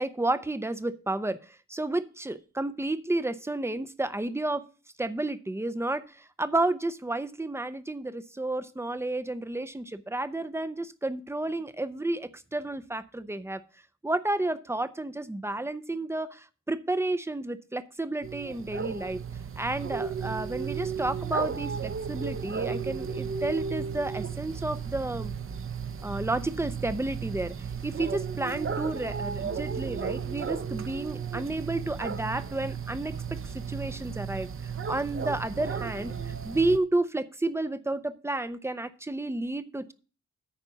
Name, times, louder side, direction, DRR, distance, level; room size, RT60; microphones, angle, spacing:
voice 1, 0.0-1.4 1.7-4.7 5.0-6.0 6.4-13.6 14.0-19.2 19.6-25.3 26.0-27.5 27.8-33.1 33.7-34.5 34.9-39.9, right 2 dB, 10° right, 13 dB, 0.5 m, -31 dB
sound 1, 18.2-36.8, right 6 dB, 45° right, 0.7 m, -34 dB
9.1 x 5.2 x 6.9 m, 0.36 s
wide cardioid pair, 150°, 31 cm